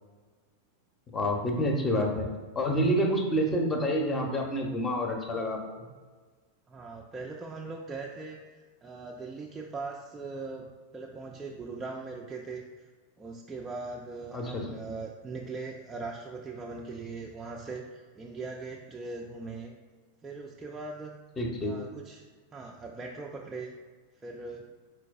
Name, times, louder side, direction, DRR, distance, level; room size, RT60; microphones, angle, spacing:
voice 1, 1.1-2.3 2.5-5.8 14.3-14.7 21.4-21.7, equal, 20° left, 2 dB, 0.7 m, -28 dB
voice 2, 6.7-12.9 13.2-19.7 20.2-21.2 21.6-22.2 22.5-23.7 24.2-24.7, right 3 dB, 15° right, -1 dB, 0.3 m, -40 dB
4.5 x 4.4 x 2.4 m, 1.4 s
figure-of-eight pair, 90°, 0 cm